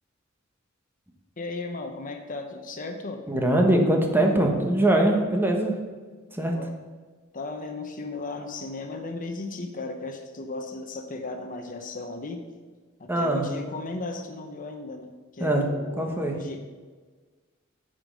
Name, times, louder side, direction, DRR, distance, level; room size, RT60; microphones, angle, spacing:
voice 1, 1.4-3.2 6.5-6.7 7.3-12.4 13.0-16.7, left 3 dB, 40° left, 5 dB, 0.8 m, -36 dB
voice 2, 3.3-5.8 6.3-6.5 13.1-13.5 15.4-15.7 16.0-16.4, right 1 dB, 10° right, 2 dB, 1.1 m, -22 dB
9.4 x 5.2 x 6.2 m, 1.4 s
head